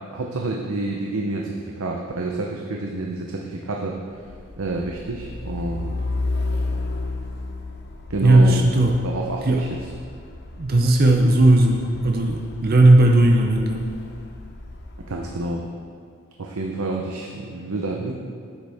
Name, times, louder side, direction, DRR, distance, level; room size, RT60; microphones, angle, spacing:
voice 1, 0.1-4.0 4.6-5.9 8.1-8.6 9.0-9.8 15.1-15.6 16.4-18.1, right 2 dB, 80° right, 0 dB, 0.7 m, -28 dB
Truck, 4.1-15.5, left 2 dB, 50° left, 0.8 m, -33 dB
voice 2, 8.2-9.0 9.5-9.6 10.6-13.8, right 1 dB, 45° right, 2 dB, 0.6 m, -16 dB
10.5 x 8.0 x 3.5 m, 2.1 s
head